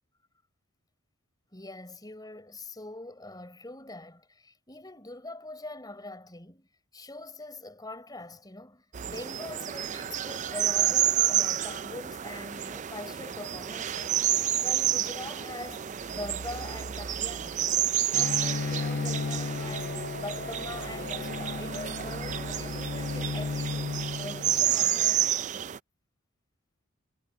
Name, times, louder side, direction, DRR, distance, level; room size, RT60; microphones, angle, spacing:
voice 1, 1.5-25.2, left 2 dB, 20° left, 4.5 m, -43 dB
sound 1, 8.9-25.8, right 11 dB, 35° right, 0.4 m, -30 dB
Bowed string instrument, 18.1-24.8, left 4 dB, 45° left, 0.5 m, -34 dB
head